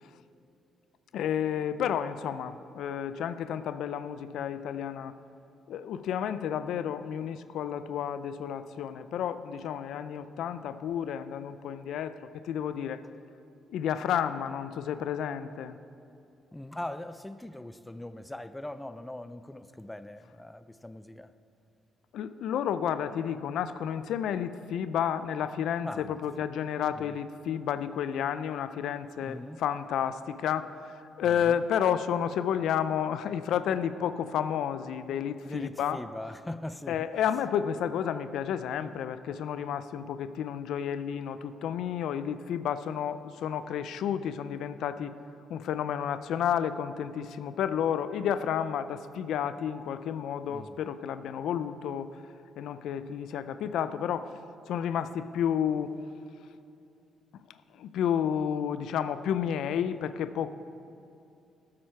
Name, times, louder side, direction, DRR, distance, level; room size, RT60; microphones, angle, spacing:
voice 1, 1.1-5.2 5.7-13.0 13.7-15.8 22.1-36.0 36.9-45.1 45.5-52.1 52.6-54.3 54.7-56.0 57.7-60.5, left 9 dB, 80° left, 12 dB, 0.4 m, -31 dB
voice 2, 16.5-21.3 25.8-26.2 27.0-27.2 29.2-29.6 31.2-31.6 35.4-37.1 50.5-50.8, left 1 dB, 10° left, 12 dB, 0.4 m, -41 dB
12.5 x 7.5 x 4.5 m, 2.7 s
cardioid pair, 90°, 0 cm